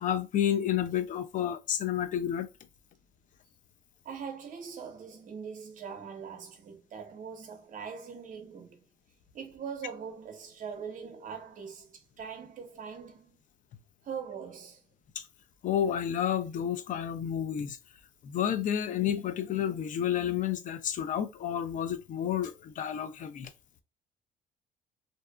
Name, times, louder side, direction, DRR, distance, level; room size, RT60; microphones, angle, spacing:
voice 1, 0.0-2.5 15.2-15.3 15.6-17.8 18.2-23.5, left 9 dB, 50° left, 0.5 m, -30 dB
voice 2, 4.0-8.8 9.3-13.4 14.0-14.8, right 6 dB, 50° right, 0.8 m, -42 dB
2.6 x 2.4 x 2.2 m
cardioid pair, 110°, 17 cm